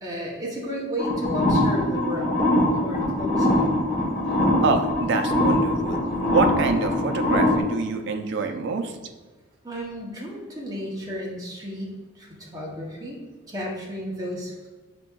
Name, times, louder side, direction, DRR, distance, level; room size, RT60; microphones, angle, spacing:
voice 1, 0.0-2.4 2.8-3.7 9.6-13.2 13.5-14.7, equal, 20° right, -3 dB, 0.8 m, -33 dB
sound 1, 1.0-7.6, left 1 dB, 40° left, 0.9 m, -22 dB
voice 2, 4.6-9.0, right 4 dB, 60° right, 6 dB, 0.4 m, -26 dB
5.9 x 3.4 x 2.3 m, 1.3 s
head